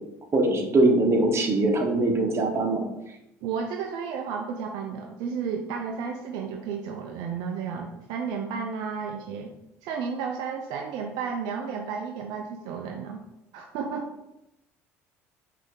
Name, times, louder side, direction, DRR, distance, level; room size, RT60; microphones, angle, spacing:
voice 1, 0.3-2.8, right 2 dB, 35° right, 2 dB, 1.1 m, -22 dB
voice 2, 3.4-9.5 9.8-13.2 13.5-14.1, right 6 dB, 70° right, 3 dB, 0.5 m, -32 dB
5.2 x 2.7 x 3.6 m, 0.89 s
hypercardioid pair, 70°, 7 cm